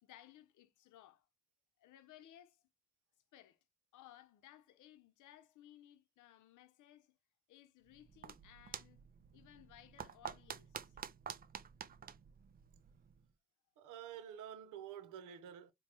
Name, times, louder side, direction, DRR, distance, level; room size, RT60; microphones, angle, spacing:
voice 1, 0.0-1.3 1.8-2.6 3.3-3.6 3.9-7.2 7.5-9.0 9.3-11.0, left 12 dB, 80° left, 0.7 m, -61 dB
sound 1, 7.9-13.2, right 8 dB, 30° right, 0.4 m, -50 dB
voice 2, 13.8-15.7, right 9 dB, 90° right, 0.7 m, -49 dB
4.6 x 2.3 x 2.8 m
cardioid pair, 90°, 30 cm